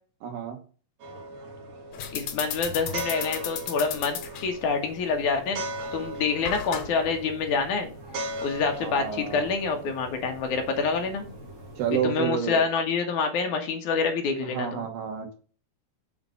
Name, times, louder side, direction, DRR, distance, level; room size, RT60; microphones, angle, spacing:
voice 1, 0.2-0.6 8.8-9.5 11.8-12.7 14.5-15.3, right 8 dB, 85° right, 3 dB, 3.4 m, -30 dB
sound 1, 1.0-12.2, right 1 dB, 55° right, 3.1 m, -39 dB
sound 2, 1.9-12.0, left 8 dB, 85° left, 2.9 m, -38 dB
voice 2, 2.1-5.6 5.9-7.9 8.4-11.2 12.0-14.9, left 5 dB, 70° left, 4 dB, 2.4 m, -27 dB
7.3 x 3.9 x 5.4 m, 0.38 s
omnidirectional pair, 3.9 m